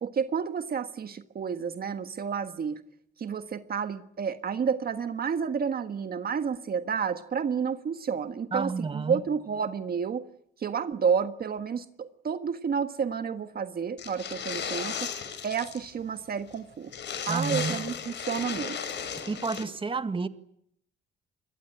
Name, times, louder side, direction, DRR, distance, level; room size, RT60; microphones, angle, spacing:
voice 1, 0.0-2.8 3.2-10.2 10.6-15.1 15.4-16.9 17.3-17.9 18.2-18.8, right 6 dB, 50° right, 1.6 m, -30 dB
voice 2, 8.5-9.2 17.3-17.8 19.3-20.3, right 4 dB, 25° right, 1.9 m, -30 dB
sound 1, 14.0-15.9 16.2-16.3 16.5-16.6 16.9-19.6, left 7 dB, 65° left, 6.0 m, -35 dB
27.5 x 22.0 x 8.8 m
cardioid pair, 90°, 20 cm